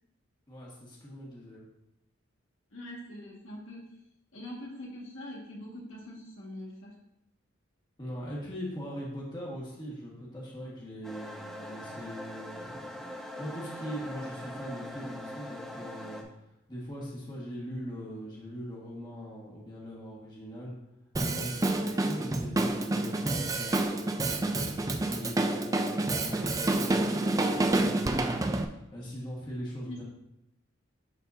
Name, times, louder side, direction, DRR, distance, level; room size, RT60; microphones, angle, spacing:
voice 1, 0.5-1.6 8.0-16.2 16.7-20.7 21.2-30.0, equal, 20° left, -4 dB, 1.5 m, -41 dB
voice 2, 2.7-3.8 4.3-6.9 21.7-22.0 29.9-30.0, left 1 dB, 80° left, -3 dB, 1.8 m, -43 dB
sound 1, 11.0-16.2, left 1 dB, ahead, 0.7 m, -42 dB
Drum kit, 21.2-28.7, right 2 dB, 15° right, 0.3 m, -28 dB
11.5 x 4.1 x 2.7 m, 0.83 s
head